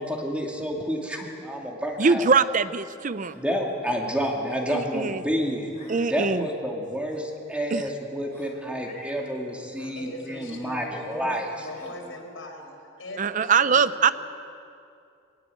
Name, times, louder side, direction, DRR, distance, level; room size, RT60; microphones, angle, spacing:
voice 1, 0.0-2.5 3.3-5.7 6.1-11.7, equal, 5° right, 0 dB, 2.5 m, -29 dB
sound 1, 1.6-1.7 1.8-1.9 2.5-2.6 3.1-3.4 4.8-4.9 5.7-6.1 7.1-7.2 7.9-8.0 8.3-8.6 9.7-10.0 11.7-12.1, equal, 10° left, 3.5 m, -52 dB
voice 2, 2.0-3.4 4.7-5.2 5.9-6.5 7.7-7.8 13.2-14.1, right 5 dB, 40° right, 14 dB, 0.5 m, -22 dB
Meow, 5.5-6.1 6.6-6.7 8.7-9.3 10.9-11.0 11.6-11.9, left 3 dB, 40° left, 4.0 m, -49 dB
voice 3, 10.0-14.1, left 1 dB, 75° left, 0 dB, 5.5 m, -41 dB
23.0 x 19.5 x 8.5 m, 2.6 s
head